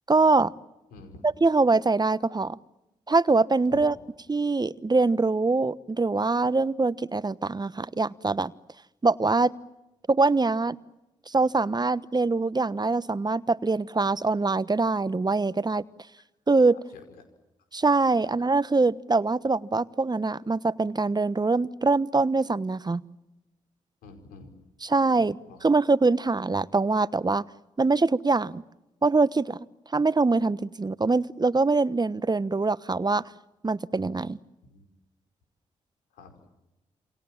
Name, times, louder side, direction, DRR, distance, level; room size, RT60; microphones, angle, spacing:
voice 1, 0.1-0.5 1.2-2.6 3.1-4.0 4.3-8.5 9.0-9.6 10.1-10.8 11.3-15.8 16.5-16.8 17.7-23.0 24.8-27.4 27.8-28.6 29.0-29.6 29.9-33.2 33.6-34.4, right 3 dB, 30° right, 17 dB, 1.2 m, -23 dB
voice 2, 0.9-1.2 3.7-3.9 16.9-17.2 24.0-24.5 25.5-25.6 34.6-34.8 36.1-36.3, left 3 dB, 85° left, 6 dB, 5.3 m, -47 dB
28.5 x 26.5 x 7.4 m, 0.98 s
hypercardioid pair, 40°, 15 cm